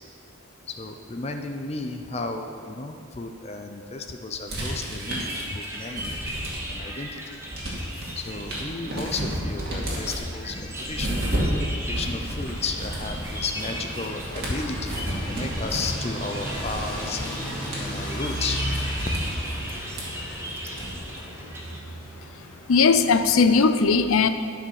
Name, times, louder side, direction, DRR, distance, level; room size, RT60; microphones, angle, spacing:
voice 1, 0.8-6.1 6.7-7.4 8.2-11.3 11.9-17.2 17.8-18.8, left 3 dB, 30° left, 5 dB, 0.5 m, -33 dB
sound 1, 4.5-6.9 7.2-21.2, right 1 dB, 50° right, 2.4 m, -32 dB
sound 2, 5.0-21.8, equal, 10° right, 1.0 m, -38 dB
sound 3, 11.6-23.3, equal, 5° left, 1.9 m, -35 dB
voice 2, 22.7-24.3, left 4 dB, 90° left, 11 dB, 0.5 m, -18 dB
12.0 x 5.0 x 6.4 m, 2.5 s
head